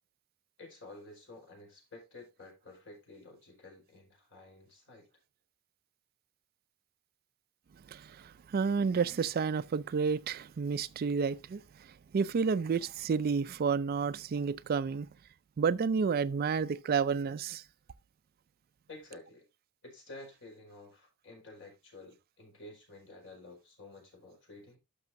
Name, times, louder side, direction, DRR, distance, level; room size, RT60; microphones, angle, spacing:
voice 1, 0.6-5.1 18.9-19.4 19.8-24.8, left 2 dB, 60° left, 4.9 m, -51 dB
voice 2, 7.9-11.6 12.1-15.1 15.6-17.6, right 5 dB, 45° right, 0.4 m, -30 dB
12.0 x 6.2 x 2.6 m
head